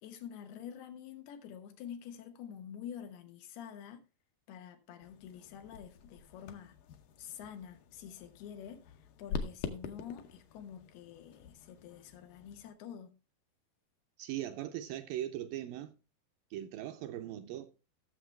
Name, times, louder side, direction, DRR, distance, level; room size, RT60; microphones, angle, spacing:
voice 1, 0.0-4.0 4.5-6.8 7.2-13.1, left 9 dB, 90° left, 3.2 m, -47 dB
sound 1, 5.0-12.7, left 6 dB, 70° left, 2.3 m, -46 dB
voice 2, 14.2-15.9 16.5-17.9, right 12 dB, 80° right, 2.2 m, -40 dB
16.0 x 6.9 x 3.2 m
omnidirectional pair, 4.4 m